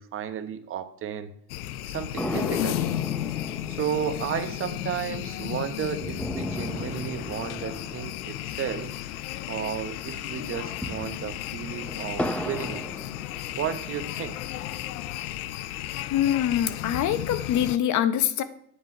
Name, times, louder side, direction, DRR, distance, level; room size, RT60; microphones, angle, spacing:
voice 1, 0.0-1.3 1.9-2.9 3.7-9.0 9.5-12.9 13.6-14.4, right 8 dB, 30° right, 1.0 m, -33 dB
sound 1, 1.5-17.8, left 14 dB, 85° left, 0.6 m, -34 dB
sound 2, 2.2-9.8 10.0-10.1 10.6-13.9 14.4-15.4, left 1 dB, 5° left, 0.7 m, -37 dB
voice 2, 16.1-18.4, left 10 dB, 40° left, 0.9 m, -24 dB
9.4 x 8.3 x 4.8 m
supercardioid pair, 115°, 42 cm